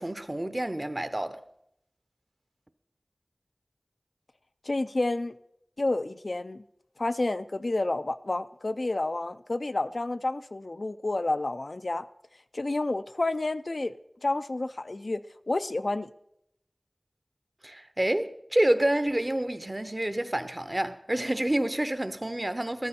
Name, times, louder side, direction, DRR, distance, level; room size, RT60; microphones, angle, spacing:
voice 1, 0.0-1.4 17.6-22.9, right 1 dB, 30° right, 0.8 m, -28 dB
voice 2, 4.7-5.3 5.8-6.6 7.0-12.1 12.5-15.2 15.5-16.1, left 2 dB, 65° left, 0.4 m, -30 dB
14.0 x 13.5 x 4.3 m
wide cardioid pair, 55°, 0 cm